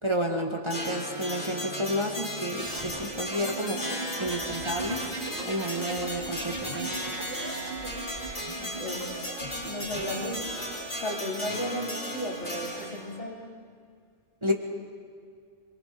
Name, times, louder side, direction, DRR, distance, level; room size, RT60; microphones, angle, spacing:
voice 1, 0.0-3.8 4.2-5.0 5.4-6.9 14.4-14.5, equal, 25° right, 1 dB, 2.0 m, -30 dB
sound 1, 0.7-13.2, equal, 45° left, 4.6 m, -36 dB
sound 2, 2.6-11.1 12.2-12.8, right 2 dB, 45° right, 4.6 m, -39 dB
voice 2, 8.6-9.1 9.6-10.4 11.0-13.4, left 1 dB, 70° left, -3 dB, 4.0 m, -34 dB
27.0 x 22.0 x 5.3 m, 2.2 s
omnidirectional pair, 1.2 m